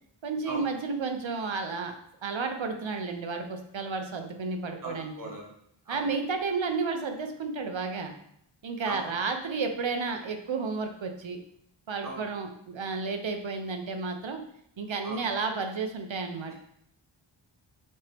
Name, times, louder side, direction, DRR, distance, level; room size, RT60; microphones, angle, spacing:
voice 1, 0.2-1.9 2.2-5.1 5.9-8.1 8.6-11.4 11.9-14.4 14.8-16.5, right 4 dB, 70° right, 5 dB, 1.0 m, -32 dB
voice 2, 4.8-5.5 5.8-6.1 8.8-9.2 12.0-12.2 15.0-15.3 16.5-16.6, right 1 dB, 40° right, -2 dB, 1.6 m, -39 dB
6.4 x 4.4 x 3.5 m, 0.73 s
wide cardioid pair, 75°, 48 cm